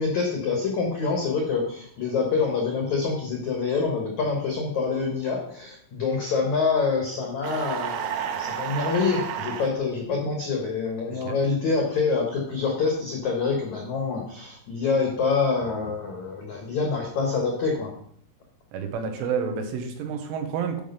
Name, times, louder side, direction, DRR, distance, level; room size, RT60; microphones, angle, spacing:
voice 1, 0.0-17.9, left 4 dB, 75° left, 1 dB, 1.6 m, -26 dB
sound 1, 7.4-9.7, right 9 dB, 75° right, 2.6 m, -31 dB
voice 2, 18.7-20.8, right 6 dB, 90° right, 5 dB, 3.7 m, -29 dB
11.0 x 5.3 x 5.5 m, 0.65 s
omnidirectional pair, 5.5 m